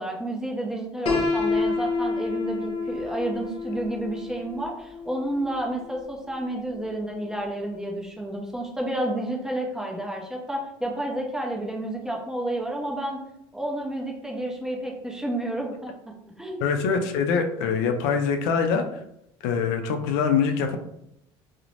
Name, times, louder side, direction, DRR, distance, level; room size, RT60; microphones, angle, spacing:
voice 1, 0.0-13.2 13.5-15.9 16.4-16.6, right 1 dB, 5° right, 0 dB, 0.6 m, -30 dB
Piano, 1.1-6.9, left 4 dB, 50° left, 0.7 m, -29 dB
voice 2, 16.6-18.8 19.4-20.8, left 6 dB, 85° left, 5 dB, 0.4 m, -24 dB
2.5 x 2.0 x 3.1 m, 0.78 s
supercardioid pair, 100°, 12 cm